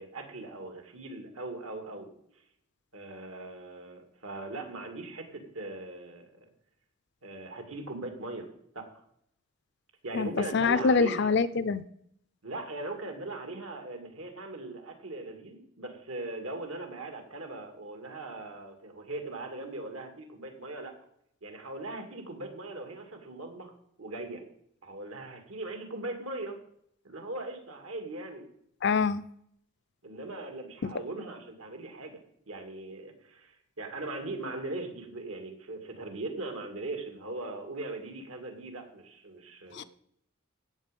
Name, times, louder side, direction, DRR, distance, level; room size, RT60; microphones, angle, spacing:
voice 1, 0.0-2.1 2.9-6.5 7.2-8.5 8.7-8.9 10.0-11.3 12.4-21.0 21.4-24.4 24.8-26.6 27.0-28.4 30.0-32.2 32.5-39.9, right 2 dB, 80° right, 5 dB, 2.6 m, -40 dB
voice 2, 10.1-11.8 28.8-29.2 30.8-30.9 39.7-39.8, left 5 dB, 50° left, 15 dB, 0.5 m, -25 dB
16.5 x 7.5 x 5.3 m, 0.72 s
head